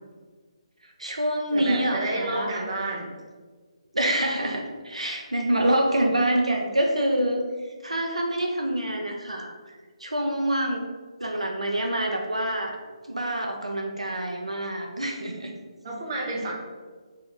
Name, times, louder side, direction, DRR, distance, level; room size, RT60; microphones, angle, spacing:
voice 1, 1.0-2.6 3.9-7.4 7.8-9.5 10.0-10.9 11.2-12.8 13.1-15.6, right 1 dB, 85° right, 2 dB, 0.5 m, -26 dB
voice 2, 1.5-3.1 15.8-16.5, right 2 dB, 35° right, -2 dB, 0.8 m, -30 dB
3.1 x 2.9 x 3.8 m, 1.4 s
figure-of-eight pair, 145°, 3 cm